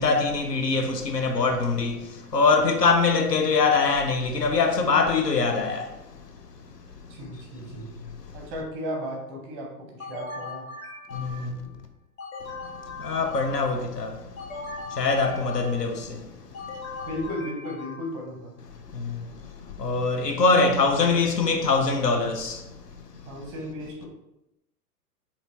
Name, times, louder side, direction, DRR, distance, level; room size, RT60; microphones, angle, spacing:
voice 1, 0.0-2.0 2.3-5.8 11.1-11.5 13.0-14.1 15.0-16.0 19.8-22.6, left 4 dB, 85° left, 0.7 m, -22 dB
voice 2, 7.1-7.9 8.3-10.7 17.1-18.5 23.2-24.1, equal, 20° right, 0.6 m, -35 dB
sound 1, 10.0-11.7 12.2-13.9 14.4-16.0 16.5-18.2, left 3 dB, 55° left, 1.2 m, -39 dB
3.9 x 2.9 x 2.9 m
figure-of-eight pair, 110°, 47 cm